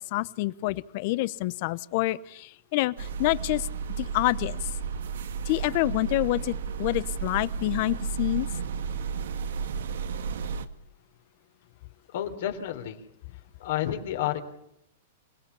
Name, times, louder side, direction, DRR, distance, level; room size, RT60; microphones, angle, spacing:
voice 1, 0.1-3.7 4.0-4.7 5.5-8.5, left 19 dB, 50° left, 18 dB, 0.9 m, -27 dB
sound 1, 3.0-10.7, right 6 dB, 80° right, 1.7 m, -33 dB
voice 2, 12.1-13.0 13.3-14.4, left 12 dB, 65° left, 6 dB, 3.6 m, -31 dB
27.5 x 18.0 x 7.2 m, 0.77 s
hypercardioid pair, 145°, 0 cm